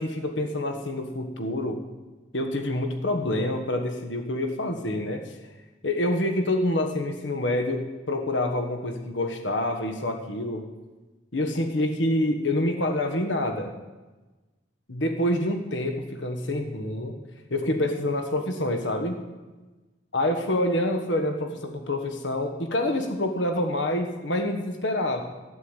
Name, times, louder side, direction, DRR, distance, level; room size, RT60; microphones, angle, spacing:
voice 1, 0.0-1.8 2.3-5.4 5.8-10.7 11.3-13.7 14.9-17.2 17.5-19.2 20.1-25.2, left 1 dB, 80° left, 5 dB, 1.4 m, -27 dB
12.5 x 11.5 x 8.1 m, 1.2 s
head